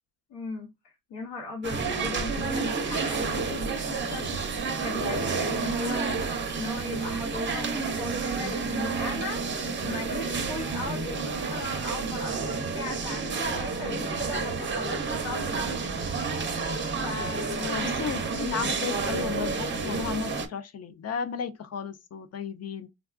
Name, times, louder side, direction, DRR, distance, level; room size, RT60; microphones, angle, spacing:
voice 1, 0.3-15.6 17.0-17.7, left 2 dB, 75° left, 1.0 m, -38 dB
sound 1, 1.6-20.5, right 4 dB, 30° right, 0.5 m, -30 dB
voice 2, 17.6-22.9, left 7 dB, 40° left, 0.4 m, -34 dB
3.4 x 2.3 x 2.4 m
cardioid pair, 120°, 41 cm